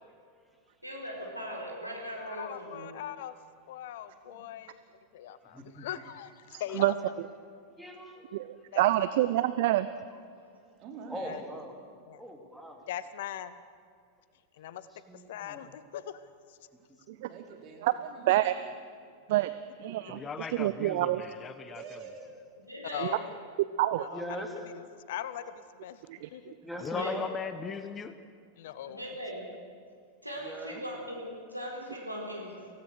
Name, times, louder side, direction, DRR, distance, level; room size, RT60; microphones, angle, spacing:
voice 1, 0.8-2.9 4.2-4.4 7.6-7.7 10.4-10.5 22.7-23.3 27.0-27.2 28.9-29.6 30.2-32.7, equal, 90° right, -2 dB, 4.1 m, -39 dB
voice 2, 2.2-3.3 3.7-4.8 5.1-6.9 8.7-8.9 9.4-9.5 11.2-11.4 12.1-12.2 12.9-13.6 14.6-14.9 15.3-16.2 16.5-16.6 20.0-20.1 22.9-23.4 24.0-24.2 24.7-25.4 25.8-26.0 26.3-26.5 28.6-29.2, left 11 dB, 55° left, 15 dB, 0.9 m, -40 dB
voice 3, 5.5-5.9 6.5-6.8 7.8-8.3 11.1-11.7 12.2-12.8 15.1-15.7 16.9-17.2 24.1-24.6 26.6-27.3 30.4-30.8, equal, ahead, 1 dB, 2.7 m, -41 dB
voice 4, 8.3-9.9 17.8-17.9 18.3-18.5 19.3-19.5 19.8-21.2 23.0-23.1 23.8-24.1 26.1-26.3, right 15 dB, 50° right, 13 dB, 0.6 m, -27 dB
voice 5, 10.3-11.4 17.1-18.7 21.7-22.4, right 5 dB, 35° right, 1 dB, 3.6 m, -47 dB
voice 6, 20.1-22.0 26.8-28.2, left 5 dB, 20° left, 11 dB, 1.0 m, -38 dB
24.0 x 17.0 x 6.4 m, 2.1 s
figure-of-eight pair, 90°, 0 cm